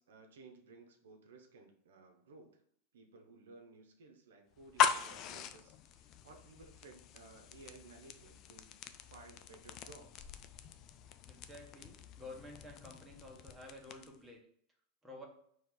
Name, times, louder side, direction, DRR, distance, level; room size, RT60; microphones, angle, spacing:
voice 1, 0.0-2.6 2.9-8.8 9.1-10.3, right 3 dB, 85° right, 4 dB, 0.8 m, -57 dB
sound 1, 4.6-14.3, left 8 dB, 45° left, 0.4 m, -40 dB
voice 2, 11.2-14.4 15.0-15.3, left 2 dB, 5° right, -1 dB, 1.3 m, -51 dB
4.5 x 3.0 x 3.9 m, 0.65 s
hypercardioid pair, 110°, 0 cm